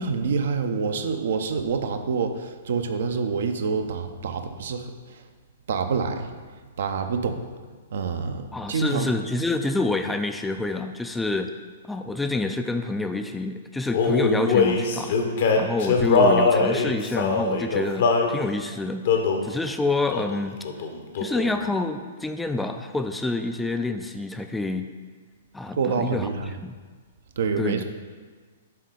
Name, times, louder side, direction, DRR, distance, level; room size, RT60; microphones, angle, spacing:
voice 1, 0.0-5.2 5.7-6.3 6.8-7.4 7.9-9.1 25.8-26.5 27.4-27.8, right 5 dB, 60° right, 7 dB, 0.5 m, -27 dB
voice 2, 8.5-11.5 11.8-15.2 15.6-19.1 19.4-20.6 21.2-24.9 25.5-26.8 27.6-27.8, left 2 dB, 5° left, 6 dB, 0.3 m, -28 dB
Male singing, 13.9-18.3 19.0-19.5 20.1-20.4 20.6-21.6, left 4 dB, 55° left, 0.8 m, -21 dB
7.8 x 3.6 x 4.9 m, 1.5 s
figure-of-eight pair, 110°, 0 cm